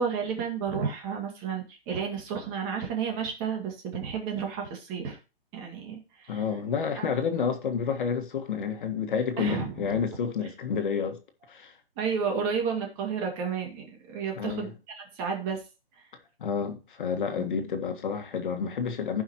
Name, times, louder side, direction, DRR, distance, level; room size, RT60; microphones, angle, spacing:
voice 1, 0.0-5.2 5.5-6.4 7.0-7.1 7.4-7.5 9.4-9.9 12.0-15.6 16.0-16.1 17.4-17.6, right 6 dB, 25° right, 2.1 m, -32 dB
voice 2, 6.3-11.2 11.5-11.7 14.4-14.7 16.4-19.2, left 6 dB, 55° left, 1.8 m, -29 dB
15.0 x 5.6 x 3.0 m
hypercardioid pair, 165°, 30 cm